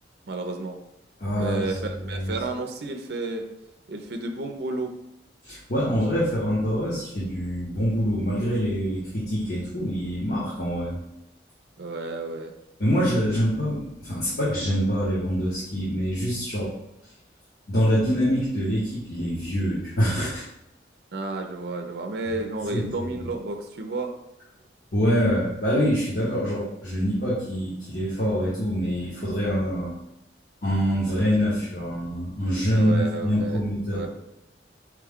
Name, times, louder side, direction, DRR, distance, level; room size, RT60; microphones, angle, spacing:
voice 1, 0.3-0.8 1.4-3.5 3.9-5.0 11.8-12.5 21.1-24.1 31.1-31.3 31.7-31.8 32.7-33.6 33.9-34.1, right 2 dB, 60° right, 4 dB, 0.5 m, -31 dB
voice 2, 1.2-2.3 5.4-11.0 12.8-16.7 17.7-20.4 22.7-23.3 24.9-30.0 30.6-34.0, equal, 55° left, -8 dB, 1.0 m, -25 dB
4.8 x 2.3 x 3.6 m, 0.85 s
head